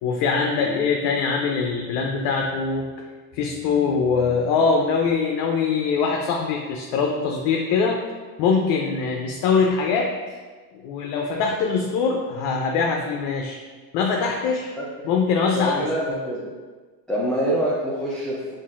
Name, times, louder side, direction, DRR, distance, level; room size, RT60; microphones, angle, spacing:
voice 1, 0.0-2.9 3.3-8.0 8.4-10.1 10.8-13.6 13.9-14.7 15.0-16.2, left 5 dB, 60° left, 1 dB, 0.6 m, -23 dB
voice 2, 14.8-15.1 15.5-16.5 17.1-18.5, right 1 dB, ahead, -7 dB, 0.3 m, -26 dB
5.4 x 2.6 x 2.4 m, 1.4 s
supercardioid pair, 110°, 45 cm